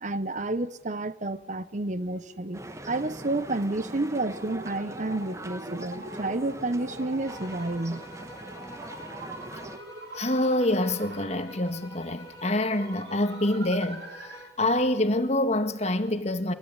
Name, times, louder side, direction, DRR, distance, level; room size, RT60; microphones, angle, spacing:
voice 1, 0.0-8.1, right 2 dB, 45° right, 0.9 m, -30 dB
sound 1, 1.8-14.5, right 2 dB, 65° right, 3.3 m, -45 dB
sound 2, 2.5-9.8, right 1 dB, 15° right, 1.4 m, -42 dB
sound 3, 7.2-14.7, equal, 20° left, 4.3 m, -48 dB
voice 2, 10.1-14.0 14.6-16.5, left 1 dB, 40° left, 1.8 m, -26 dB
25.5 x 20.5 x 9.8 m
head